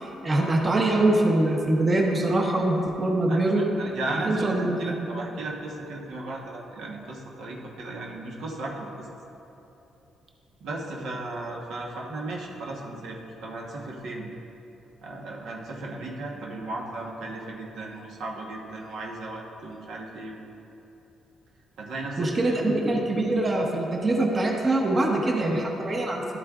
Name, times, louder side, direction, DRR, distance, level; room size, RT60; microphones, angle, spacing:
voice 1, 0.0-3.7 4.3-4.9 22.2-26.4, right 2 dB, 30° right, 0 dB, 0.9 m, -24 dB
voice 2, 3.3-9.1 10.6-14.3 15.0-20.4 21.8-22.7, right 2 dB, 80° right, -2 dB, 1.1 m, -35 dB
11.5 x 8.4 x 2.4 m, 2.9 s
cardioid pair, 90°, 0 cm